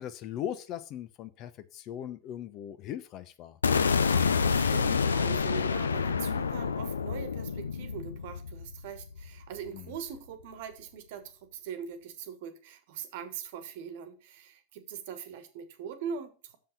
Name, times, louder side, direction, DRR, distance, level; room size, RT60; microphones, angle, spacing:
voice 1, 0.0-3.6 9.7-9.8, left 10 dB, 35° left, 0.7 m, -39 dB
sound 1, 3.6-9.7, left 5 dB, 70° left, 0.6 m, -28 dB
voice 2, 4.1-16.6, right 8 dB, 50° right, 1.3 m, -42 dB
7.0 x 5.5 x 5.8 m
figure-of-eight pair, 90°, 0 cm